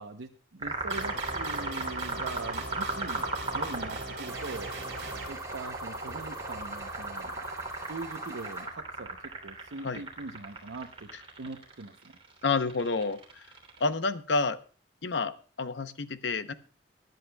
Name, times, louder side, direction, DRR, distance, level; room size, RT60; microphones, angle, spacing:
voice 1, 0.0-3.3 3.5-4.7 5.3-7.4 7.9-11.1 11.4-12.1, right 3 dB, 90° right, 4 dB, 0.8 m, -41 dB
sound 1, 0.6-13.9, right 2 dB, 30° right, 3.1 m, -36 dB
sound 2, 0.9-5.3, right 3 dB, 65° right, 3.1 m, -39 dB
sound 3, 4.3-8.7, right 2 dB, 15° right, 3.0 m, -42 dB
voice 2, 12.4-13.2 13.8-14.6 15.0-16.5, left 4 dB, 70° left, 11 dB, 0.8 m, -29 dB
22.0 x 10.5 x 2.3 m, 0.38 s
head